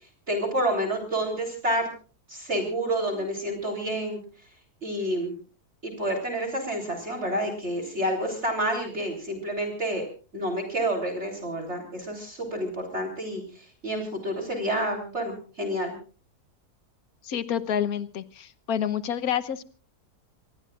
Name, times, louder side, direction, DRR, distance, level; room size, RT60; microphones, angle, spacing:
voice 1, 0.3-1.9 2.3-4.2 4.8-5.3 5.8-10.0 10.3-16.0, right 1 dB, 45° right, 2 dB, 3.9 m, -29 dB
voice 2, 17.2-19.6, left 9 dB, 70° left, 14 dB, 1.4 m, -28 dB
27.0 x 19.5 x 2.5 m, 0.37 s
omnidirectional pair, 1.6 m